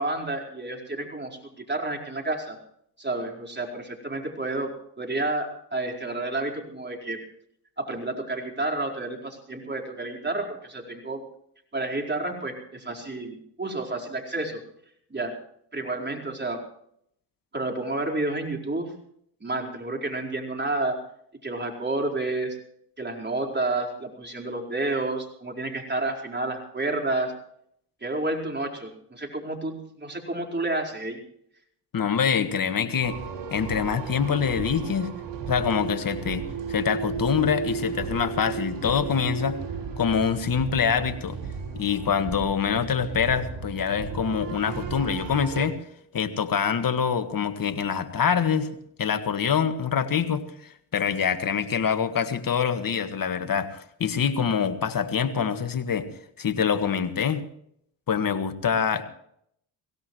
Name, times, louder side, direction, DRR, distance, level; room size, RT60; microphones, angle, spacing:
voice 1, 0.0-2.6 3.0-7.2 7.8-11.2 11.7-14.6 15.1-15.4 15.7-16.6 17.5-18.9 19.4-21.0 21.4-22.6 23.0-27.3 28.0-31.2, right 2 dB, 20° right, 1 dB, 4.7 m, -30 dB
voice 2, 31.9-33.2 33.5-35.1 35.5-39.6 40.0-41.4 41.7-45.8 46.1-48.7 49.0-56.1 56.4-57.4 58.1-59.0, left 7 dB, 45° left, 9 dB, 1.7 m, -25 dB
sound 1, 33.0-45.7, right 6 dB, 60° right, 3.6 m, -34 dB
23.0 x 17.0 x 3.2 m, 0.69 s
hypercardioid pair, 55°, 49 cm